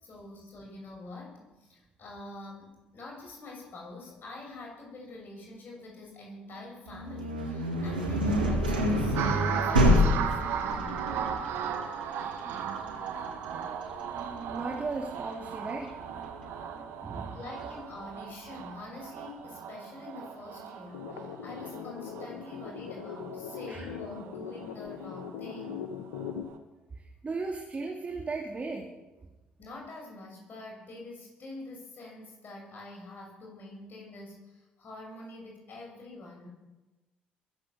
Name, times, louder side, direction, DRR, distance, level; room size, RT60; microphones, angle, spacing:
voice 1, 0.0-11.1 17.3-26.0 29.6-36.5, left 2 dB, 45° left, 0 dB, 6.6 m, -46 dB
sound 1, 6.9-16.6, equal, 90° right, 2.3 m, -28 dB
sound 2, 9.2-25.8 26.1-26.6, right 7 dB, 60° right, 1.9 m, -37 dB
voice 2, 12.4-13.3 14.2-15.9 17.0-17.4 23.7-23.9 26.9-29.3, right 3 dB, 30° right, 1 dB, 2.7 m, -37 dB
sound 3, 20.9-26.4, left 7 dB, 75° left, 1.4 m, -40 dB
22.0 x 8.2 x 7.0 m, 1.1 s
figure-of-eight pair, 50°, 5 cm